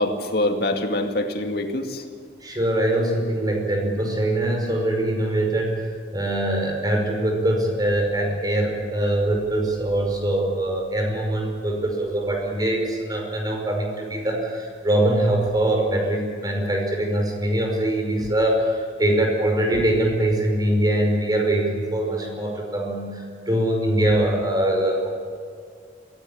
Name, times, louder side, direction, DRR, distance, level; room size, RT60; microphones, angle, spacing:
voice 1, 0.0-2.0, left 1 dB, 60° left, 4 dB, 2.3 m, -24 dB
voice 2, 2.4-25.1, right 1 dB, 25° right, 1 dB, 5.3 m, -23 dB
22.0 x 17.0 x 8.7 m, 2.2 s
head